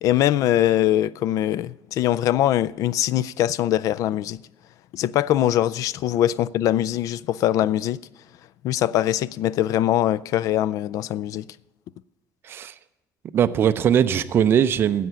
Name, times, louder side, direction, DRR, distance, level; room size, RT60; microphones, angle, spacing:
voice 1, 0.0-4.4 4.9-8.0 8.6-11.5, left 12 dB, 55° left, 0.3 m, -22 dB
voice 2, 12.4-12.7 13.3-15.1, right 8 dB, 35° right, 0.5 m, -20 dB
10.5 x 7.7 x 9.6 m
cardioid pair, 170°, 7 cm